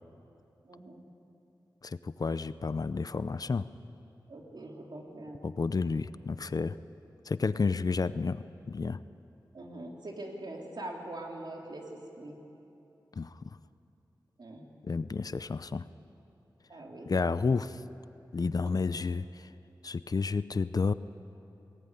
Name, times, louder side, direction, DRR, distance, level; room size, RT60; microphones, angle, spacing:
voice 1, 0.6-1.1 4.3-5.5 9.5-12.4 14.4-14.7 16.7-17.1 18.6-18.7, right 1 dB, 65° right, 0 dB, 3.4 m, -43 dB
voice 2, 1.8-3.7 5.4-6.8 7.3-9.0 13.2-13.4 14.8-15.9 17.1-17.8 18.3-19.2 19.8-20.9, left 4 dB, 50° left, 14 dB, 0.6 m, -31 dB
21.5 x 18.0 x 9.8 m, 2.9 s
wide cardioid pair, 90°, 8 cm